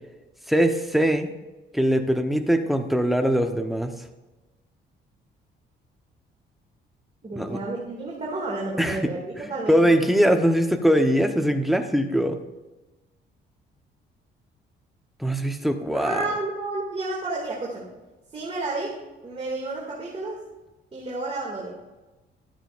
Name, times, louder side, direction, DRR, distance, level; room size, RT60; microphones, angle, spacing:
voice 1, 0.5-1.3 1.7-3.9 7.4-7.6 8.8-9.0 9.7-12.4 15.2-16.2, equal, ahead, 5 dB, 1.0 m, -21 dB
voice 2, 7.2-10.1 15.9-17.9 18.3-20.5 20.9-21.7, right 2 dB, 30° right, -3 dB, 2.3 m, -31 dB
12.5 x 9.0 x 2.5 m, 1.1 s
cardioid pair, 90°, 20 cm